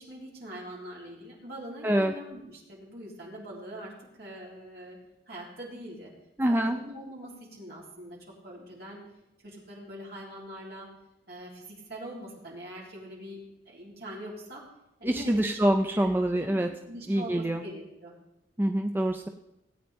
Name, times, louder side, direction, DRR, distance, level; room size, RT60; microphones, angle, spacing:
voice 1, 0.0-5.0 5.3-6.1 6.5-9.0 9.4-10.9 11.3-14.7 15.0-16.1 16.4-16.6 16.9-18.2, right 1 dB, 55° right, -4 dB, 3.4 m, -43 dB
voice 2, 1.8-2.1 6.4-6.8 15.0-16.7 17.1-17.6 18.6-19.3, right 1 dB, 10° right, 5 dB, 0.4 m, -25 dB
18.0 x 8.8 x 3.5 m, 0.87 s
head